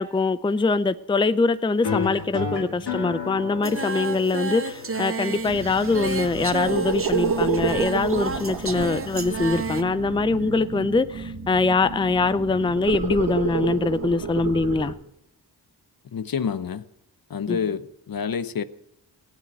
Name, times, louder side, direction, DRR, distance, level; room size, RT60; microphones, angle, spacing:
voice 1, 0.0-14.9 17.5-17.6, left 3 dB, 10° left, 0.5 m, -23 dB
sound 1, 1.8-6.8, left 5 dB, 75° left, 2.2 m, -33 dB
Singing, 3.6-9.8, right 3 dB, 35° right, 1.1 m, -31 dB
sound 2, 5.4-14.9, right 5 dB, 55° right, 1.8 m, -30 dB
voice 2, 16.1-16.8 17.3-18.6, left 7 dB, 60° left, 0.8 m, -28 dB
15.5 x 9.5 x 6.5 m
cardioid pair, 60°, 40 cm